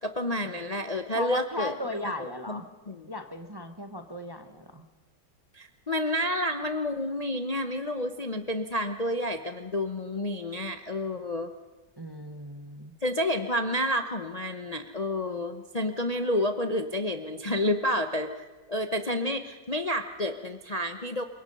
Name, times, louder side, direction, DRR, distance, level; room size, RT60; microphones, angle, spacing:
voice 1, 0.0-1.7 2.2-2.6 2.9-3.1 5.5-11.5 13.0-21.2, left 1 dB, 30° left, 6 dB, 0.8 m, -30 dB
voice 2, 1.1-2.7 3.1-4.8 12.0-12.9, left 1 dB, 15° right, 6 dB, 0.9 m, -36 dB
27.5 x 23.0 x 5.4 m, 1.3 s
omnidirectional pair, 1.9 m